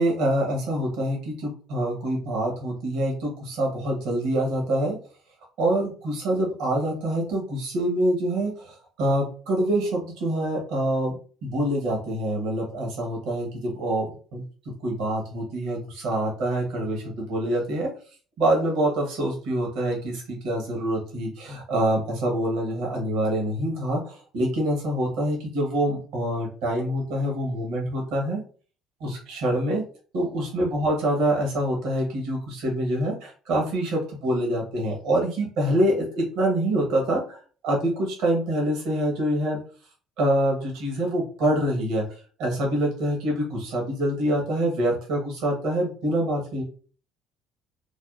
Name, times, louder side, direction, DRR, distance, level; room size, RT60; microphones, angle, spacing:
voice 1, 0.0-5.0 5.6-11.1 11.4-14.4 14.8-17.9 18.4-28.4 29.0-29.8 30.1-39.6 40.2-46.6, right 1 dB, 75° right, -1 dB, 1.0 m, -25 dB
3.4 x 2.2 x 2.4 m, 0.40 s
hypercardioid pair, 65°, 0 cm